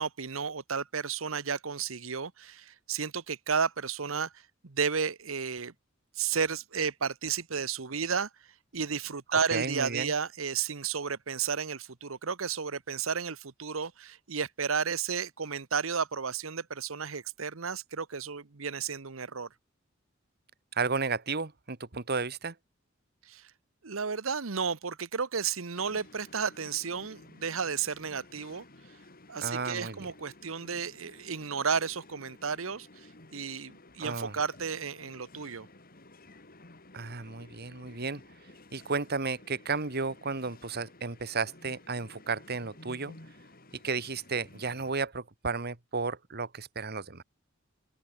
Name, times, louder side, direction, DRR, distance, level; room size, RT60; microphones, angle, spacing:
voice 1, 0.0-4.3 4.6-5.7 6.2-8.3 8.7-19.5 23.3-23.5 23.8-28.6 29.3-35.7, right 6 dB, 85° right, 1.1 m, -33 dB
voice 2, 9.3-10.1 20.7-22.5 29.4-30.1 34.0-34.4 36.9-38.2 38.7-43.2 43.8-47.2, right 4 dB, 55° right, 1.9 m, -33 dB
sound 1, 25.8-44.9, left 2 dB, 45° left, 5.2 m, -54 dB
open air
head